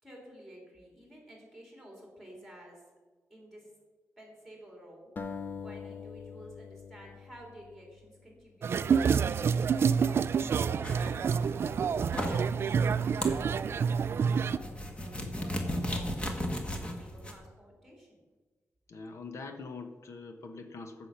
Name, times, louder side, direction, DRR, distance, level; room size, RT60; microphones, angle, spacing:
voice 1, 0.0-2.8 3.3-3.7 4.2-5.1 5.6-12.6 13.0-13.9 14.2-18.2, equal, 5° left, -1 dB, 3.4 m, -52 dB
sound 1, 5.2-8.4, left 5 dB, 35° left, 0.7 m, -43 dB
sound 2, 8.6-14.6, right 6 dB, 50° right, 0.3 m, -28 dB
sound 3, 10.8-17.3, left 1 dB, 20° left, 1.4 m, -37 dB
voice 2, 18.9-21.1, left 4 dB, 65° left, 6 dB, 1.1 m, -43 dB
15.0 x 6.3 x 5.8 m, 1.3 s
wide cardioid pair, 170°, 5 cm